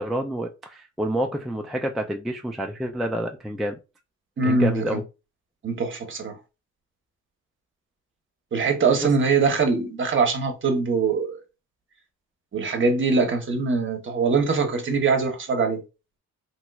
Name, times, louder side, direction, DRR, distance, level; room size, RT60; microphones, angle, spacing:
voice 1, 0.0-3.8 4.4-5.0, equal, ahead, 0.3 m, -28 dB
voice 2, 4.4-5.0 5.6-6.4 8.5-11.4 12.5-15.8, right 4 dB, 40° right, 0.9 m, -22 dB
3.0 x 2.9 x 2.3 m
cardioid pair, 90°, 30 cm